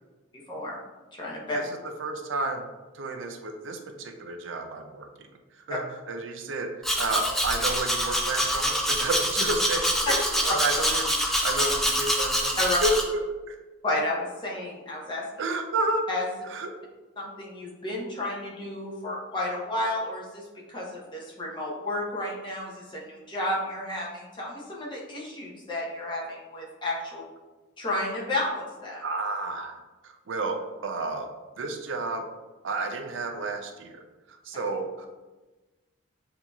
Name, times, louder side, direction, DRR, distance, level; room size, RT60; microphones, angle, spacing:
voice 1, 1.1-1.6 12.6-12.8 13.8-15.3 16.1-16.3 17.2-27.2 27.8-29.0 34.5-34.6, left 1 dB, 25° left, -4 dB, 0.9 m, -32 dB
voice 2, 2.0-2.7 2.9-5.3 5.7-5.8 6.1-13.2 13.5-13.6 15.4-16.1 16.5-16.7 29.0-31.3 31.6-32.3 32.6-34.0 34.3-35.1, right 2 dB, 70° right, 5 dB, 0.5 m, -31 dB
Domestic sounds home sounds, 6.8-13.0, equal, ahead, 0.4 m, -26 dB
7.3 x 2.8 x 2.3 m, 1.2 s
head